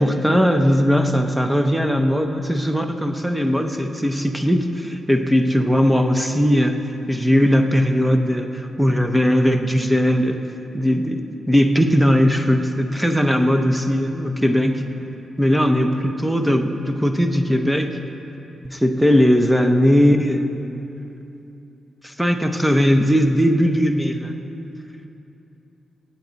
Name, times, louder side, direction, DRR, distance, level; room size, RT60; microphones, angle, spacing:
voice 1, 0.0-6.8 7.1-10.4 10.7-11.2 11.5-14.8 15.4-17.9 18.6-20.7 22.0-24.4, equal, 5° right, 6 dB, 0.7 m, -18 dB
18.5 x 8.5 x 4.0 m, 2.9 s
cardioid pair, 90°, 0 cm